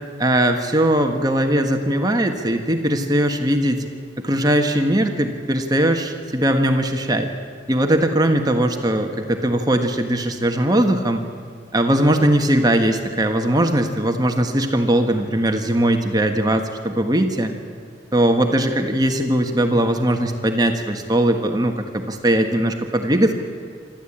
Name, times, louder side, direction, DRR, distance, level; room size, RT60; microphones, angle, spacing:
voice 1, 0.2-3.8 4.2-7.3 7.7-11.2 11.7-17.5 18.1-23.3, right 1 dB, 20° right, 5 dB, 1.4 m, -19 dB
27.0 x 13.5 x 8.7 m, 2.1 s
head